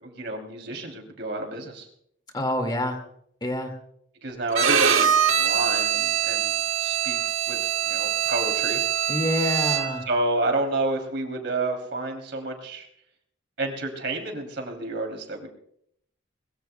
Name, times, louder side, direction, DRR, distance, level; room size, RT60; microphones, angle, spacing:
voice 1, 0.0-1.9 4.2-7.2 7.4-8.8 10.1-12.9 13.6-15.5, right 2 dB, 60° right, 3 dB, 3.0 m, -30 dB
voice 2, 2.3-3.0 3.4-3.7 9.1-10.0, left 1 dB, 20° left, 5 dB, 2.0 m, -26 dB
Bowed string instrument, 4.5-10.1, right 8 dB, 80° right, 1.2 m, -23 dB
22.5 x 21.5 x 2.3 m, 0.70 s
head